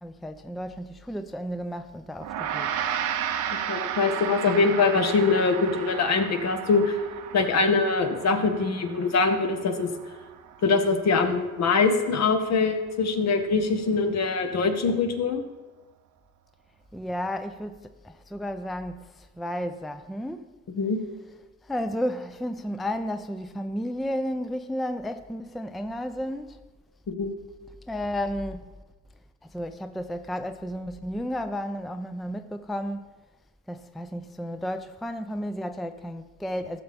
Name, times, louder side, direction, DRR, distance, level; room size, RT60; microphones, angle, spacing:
voice 1, 0.0-2.7 16.9-17.8 18.0-20.5 21.7-26.6 27.9-28.7 29.4-33.1 33.7-36.8, equal, ahead, 0.4 m, -32 dB
Gong, 2.2-11.7, right 9 dB, 75° right, 0.8 m, -34 dB
voice 2, 3.7-7.0 7.3-9.9 10.6-15.4 20.7-21.0 27.1-27.3, left 4 dB, 60° left, 1.1 m, -23 dB
14.0 x 6.8 x 3.5 m
cardioid pair, 90°, 30 cm